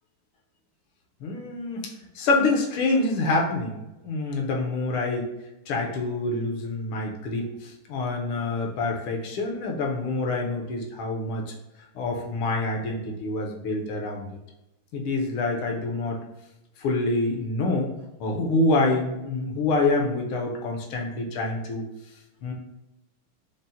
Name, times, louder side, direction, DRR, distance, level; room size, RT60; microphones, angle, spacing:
voice 1, 1.2-1.9 2.1-5.3 5.7-11.4 11.9-14.3 14.9-16.2 16.8-17.9 18.2-21.8 22.4-22.5, left 2 dB, 80° left, 1 dB, 1.5 m, -26 dB
5.6 x 2.0 x 2.6 m, 0.94 s
omnidirectional pair, 2.4 m